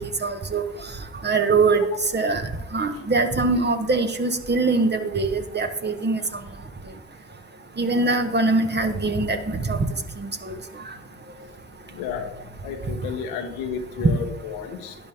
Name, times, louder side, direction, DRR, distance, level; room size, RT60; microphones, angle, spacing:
voice 1, 0.2-0.6 1.2-1.8 2.1-2.4 2.7-6.2 7.8-9.8 10.5-10.6, right 3 dB, 30° right, 6 dB, 1.6 m, -22 dB
voice 2, 11.8-12.3 12.6-15.0, left 7 dB, 80° left, 5 dB, 1.4 m, -32 dB
12.0 x 10.5 x 3.6 m, 0.88 s
hypercardioid pair, 50°, 35 cm